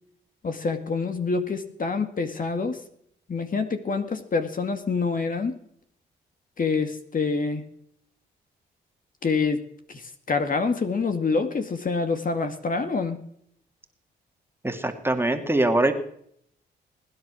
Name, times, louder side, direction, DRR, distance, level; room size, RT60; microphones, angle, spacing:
voice 1, 0.4-2.8 3.3-5.5 6.6-7.6 9.2-9.6 9.9-13.2, left 4 dB, 45° left, 7 dB, 2.2 m, -26 dB
voice 2, 14.6-15.9, right 1 dB, 10° right, 5 dB, 2.3 m, -23 dB
20.0 x 10.5 x 6.3 m, 0.68 s
cardioid pair, 70°, 20 cm